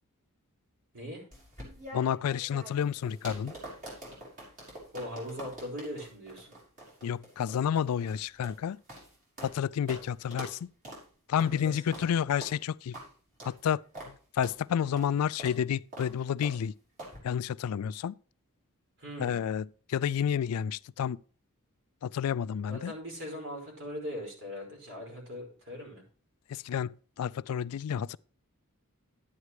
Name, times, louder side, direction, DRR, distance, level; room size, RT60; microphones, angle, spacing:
voice 1, 0.9-1.2 4.9-6.5 11.5-12.0 19.0-19.4 22.7-26.0, left 1 dB, 60° right, 5.0 m, -40 dB
sound 1, 1.3-9.6 9.9-10.0 10.3-10.6 10.8-11.0 11.4-11.6 11.9-12.1 12.4-12.6 12.9-13.1 13.4-13.6 13.9-14.1 14.4-14.6 15.0-15.1 15.4-15.6 15.9-16.1 16.4-16.6 17.0-17.2, right 1 dB, 40° right, 5.5 m, -45 dB
voice 2, 1.9-3.5 7.0-8.8 9.4-10.7 11.3-13.0 13.4-13.8 14.3-16.7 17.2-18.1 19.2-21.2 22.0-22.9 26.5-28.2, left 8 dB, 75° left, 0.3 m, -30 dB
11.5 x 9.6 x 3.1 m
head